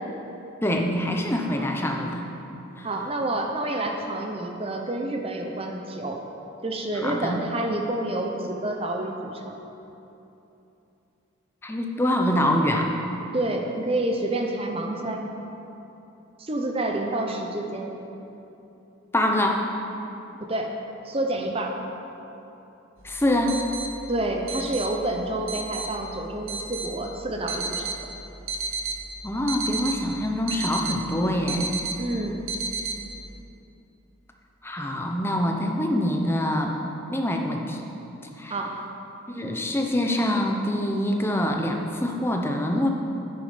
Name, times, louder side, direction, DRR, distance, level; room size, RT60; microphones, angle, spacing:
voice 1, 0.6-2.2 2.8-2.9 7.0-7.4 11.6-12.9 19.1-19.7 23.0-23.6 29.2-31.8 34.6-36.8 37.1-37.8 38.4-38.6 39.3-42.9, left 1 dB, 10° left, 2 dB, 0.8 m, -25 dB
voice 2, 2.8-6.2 6.6-9.6 13.3-15.3 16.4-17.9 20.4-20.7 21.0-21.8 24.1-27.9 32.0-32.5 38.5-38.7, right 1 dB, 30° right, 2 dB, 0.8 m, -28 dB
sound 1, 23.0-33.4, right 3 dB, 85° right, 1.0 m, -33 dB
9.6 x 9.5 x 5.2 m, 3.0 s
head